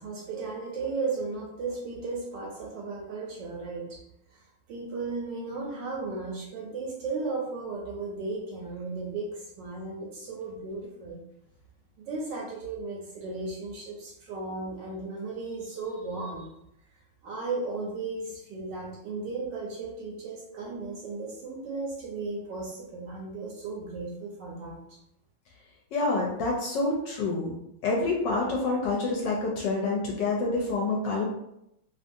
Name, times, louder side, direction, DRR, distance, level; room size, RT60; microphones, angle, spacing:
voice 1, 0.0-4.0 4.7-11.2 12.0-16.5 17.2-25.0, right 3 dB, 75° right, -1 dB, 1.1 m, -35 dB
voice 2, 25.9-27.5 27.8-31.3, left 3 dB, 70° left, -1 dB, 1.1 m, -27 dB
3.0 x 2.6 x 2.5 m, 0.79 s
omnidirectional pair, 2.2 m